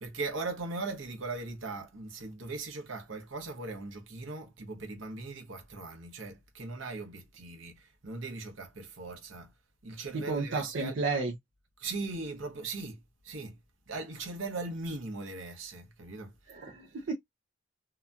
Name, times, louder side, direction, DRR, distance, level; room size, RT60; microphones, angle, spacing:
voice 1, 0.0-9.5 9.8-11.1 11.8-13.0 13.2-13.6 13.9-16.3, right 3 dB, 80° right, 0.9 m, -39 dB
voice 2, 10.1-11.3 16.5-17.1, right 3 dB, 65° right, 0.5 m, -32 dB
2.9 x 2.2 x 2.4 m
head